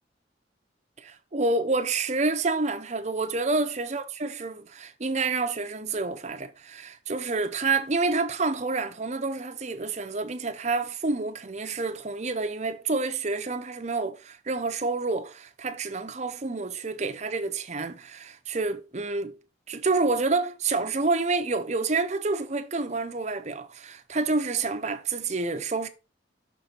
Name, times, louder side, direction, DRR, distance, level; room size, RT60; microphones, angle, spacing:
voice 1, 1.0-19.4 19.7-25.9, right 3 dB, 40° right, 0.7 m, -28 dB
6.1 x 4.3 x 5.3 m
head